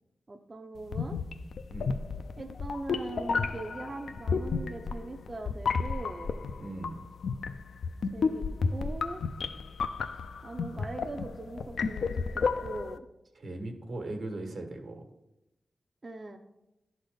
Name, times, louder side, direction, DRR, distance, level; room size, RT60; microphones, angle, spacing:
voice 1, 0.3-1.2 2.4-6.3 8.1-8.4 8.7-9.2 10.4-13.0 16.0-16.4, right 2 dB, 35° right, 3 dB, 0.5 m, -41 dB
sound 1, 0.8-13.0, left 5 dB, 85° left, 0.4 m, -32 dB
voice 2, 6.6-7.0 13.3-15.0, right 2 dB, 65° right, 4 dB, 1.3 m, -38 dB
11.5 x 4.1 x 5.1 m, 0.94 s
wide cardioid pair, 115°, 0 cm